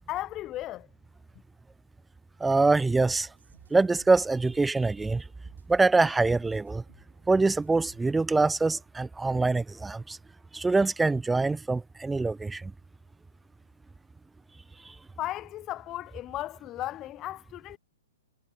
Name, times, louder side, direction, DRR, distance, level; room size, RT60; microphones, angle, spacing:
voice 1, 0.1-0.9 15.2-17.8, left 15 dB, 25° left, 1.7 m, -35 dB
voice 2, 2.4-3.3 3.7-5.2 5.7-6.8 7.3-10.2 10.5-12.7 14.8-14.9, right 3 dB, 5° right, 0.6 m, -24 dB
sound 1, 3.0-8.8, right 6 dB, 70° right, 7.8 m, -61 dB
figure-of-eight pair, 120°, 0 cm